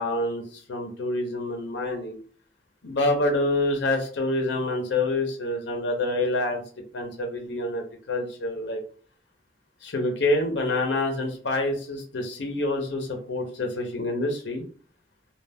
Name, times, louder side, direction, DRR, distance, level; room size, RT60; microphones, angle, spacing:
voice 1, 0.0-2.2 2.8-6.6 6.9-8.8 9.8-14.6, left 2 dB, 85° left, 3 dB, 0.6 m, -27 dB
2.2 x 2.1 x 3.4 m, 0.41 s
head